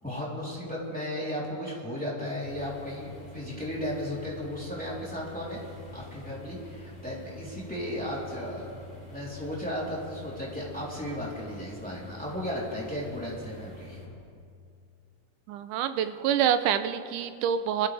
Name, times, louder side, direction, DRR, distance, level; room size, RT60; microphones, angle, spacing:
voice 1, 0.0-5.6 5.9-8.7 9.1-14.0, equal, 5° left, -6 dB, 3.0 m, -35 dB
sound 1, 2.4-14.0, left 2 dB, 35° left, 3.3 m, -46 dB
voice 2, 15.5-17.9, right 9 dB, 80° right, 10 dB, 2.1 m, -26 dB
24.5 x 14.0 x 3.4 m, 2.3 s
omnidirectional pair, 3.7 m